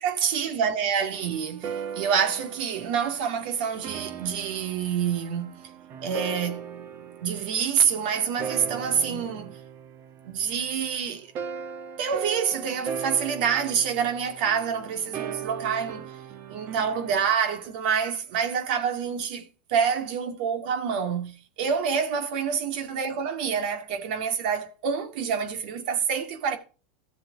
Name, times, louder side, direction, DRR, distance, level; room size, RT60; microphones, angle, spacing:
voice 1, 0.0-5.6 6.0-9.6 10.2-11.3 12.0-16.0 16.5-26.6, right 7 dB, 65° right, 2.3 m, -27 dB
sound 1, 1.1-10.8 11.3-17.3, right 7 dB, 45° right, 1.4 m, -38 dB
14.5 x 7.4 x 2.7 m
hypercardioid pair, 115°, 5 cm